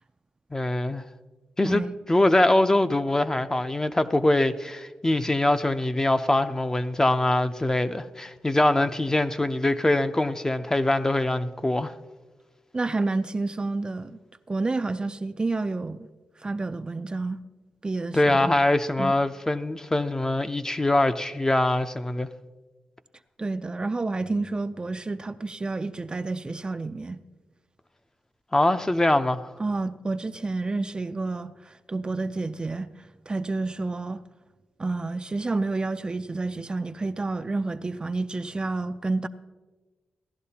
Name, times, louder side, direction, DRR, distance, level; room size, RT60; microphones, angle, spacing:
voice 1, 0.5-1.0 1.6-1.8 2.1-11.9 18.1-22.3 28.5-29.5, left 1 dB, 20° left, 0.6 m, -23 dB
voice 2, 12.7-14.2 14.5-16.1 16.4-17.4 17.8-18.5 19.0-19.1 23.4-27.2 29.6-32.9 33.3-34.2 34.8-39.3, right 3 dB, 30° right, 0.4 m, -29 dB
17.0 x 11.0 x 2.8 m
cardioid pair, 65°, 3 cm